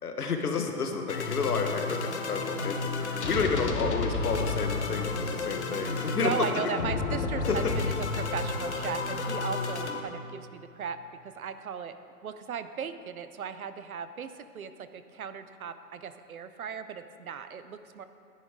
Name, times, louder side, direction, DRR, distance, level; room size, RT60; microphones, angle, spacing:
voice 1, 0.0-6.6 7.5-7.7, left 4 dB, 70° left, 4 dB, 1.4 m, -30 dB
sound 1, 0.7-10.0, left 4 dB, 45° left, 0.9 m, -31 dB
voice 2, 5.7-7.9 8.2-11.0 11.2-11.9 12.2-18.1, right 7 dB, 60° right, 11 dB, 0.7 m, -37 dB
12.5 x 10.5 x 3.7 m, 2.4 s
hypercardioid pair, 175°, 48 cm